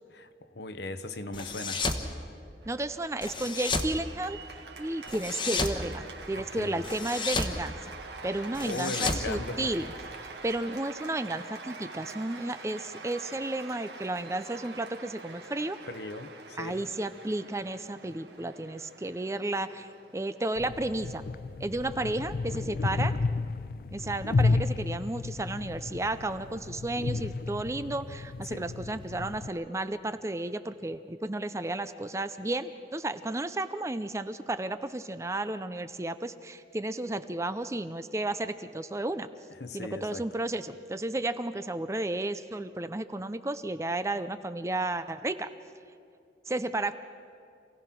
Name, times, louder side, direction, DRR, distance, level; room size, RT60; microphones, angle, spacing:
voice 1, 0.1-1.9 6.3-6.9 8.3-9.8 15.9-16.8 22.0-22.1 28.4-28.7 39.6-40.3, left 2 dB, 70° left, 9 dB, 1.1 m, -39 dB
sound 1, 1.3-2.1 3.2-3.9 5.1-5.8 6.8-7.6 8.5-10.1, left 3 dB, 25° left, 1.2 m, -32 dB
Cheering / Applause, 2.6-21.9, right 4 dB, 75° right, 1.8 m, -46 dB
voice 2, 2.7-7.9 8.2-9.9 10.4-15.8 16.6-21.2 21.6-23.2 23.9-39.3 39.7-45.5 46.5-46.9, right 2 dB, 15° right, 11 dB, 0.5 m, -33 dB
sound 2, 20.6-29.5, left 3 dB, 55° left, 0.4 m, -32 dB
27.0 x 17.0 x 6.0 m, 2.4 s
head